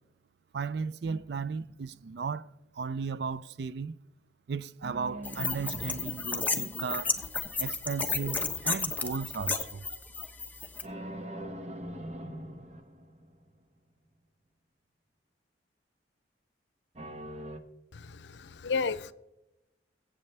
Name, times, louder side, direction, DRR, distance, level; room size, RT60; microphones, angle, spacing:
voice 1, 0.5-4.0 4.5-7.3 7.6-9.9, right 5 dB, 60° right, 0.4 m, -35 dB
sound 1, 1.0-2.2 4.8-7.5 10.8-13.5 17.0-17.6, right 1 dB, 40° right, 1.1 m, -43 dB
sound 2, 5.2-10.8, left 4 dB, 10° left, 0.8 m, -33 dB
voice 2, 17.9-19.1, left 4 dB, 75° left, 0.6 m, -33 dB
22.5 x 8.2 x 3.3 m
head